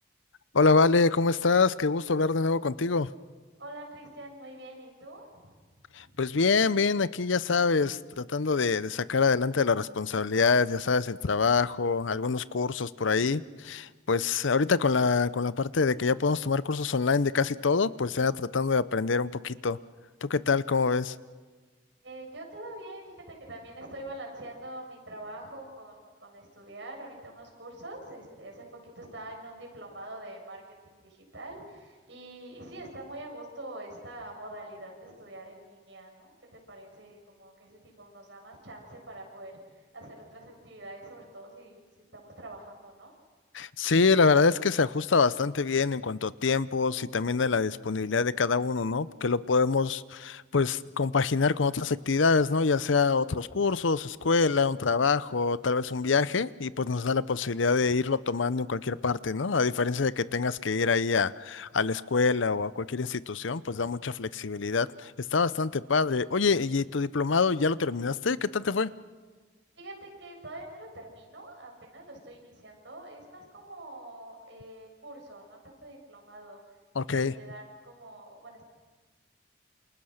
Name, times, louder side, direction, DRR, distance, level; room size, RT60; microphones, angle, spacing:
voice 1, 0.5-3.1 6.0-19.8 20.2-21.1 43.5-68.9 77.0-77.3, left 4 dB, 80° left, 17 dB, 0.7 m, -26 dB
voice 2, 3.6-6.2 22.0-28.6 29.0-43.1 69.7-76.6 77.0-78.6, right 1 dB, 70° right, 0 dB, 7.2 m, -45 dB
28.5 x 27.5 x 6.5 m, 1.4 s
head